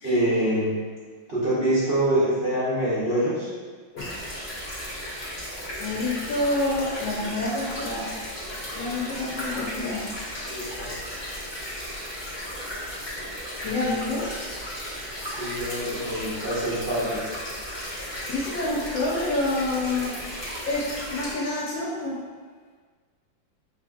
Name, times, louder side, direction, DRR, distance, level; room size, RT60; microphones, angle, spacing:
voice 1, 0.0-0.8 1.3-3.5 10.4-10.9 15.3-17.3, right 1 dB, 55° right, -11 dB, 0.6 m, -25 dB
sound 1, 4.0-21.3, equal, 35° left, 0.4 m, -35 dB
voice 2, 5.8-8.1 8.7-10.1 13.6-14.4 18.2-20.2 20.7-22.2, left 2 dB, 75° left, -5 dB, 1.3 m, -28 dB
4.7 x 2.6 x 2.3 m, 1.6 s
omnidirectional pair, 2.1 m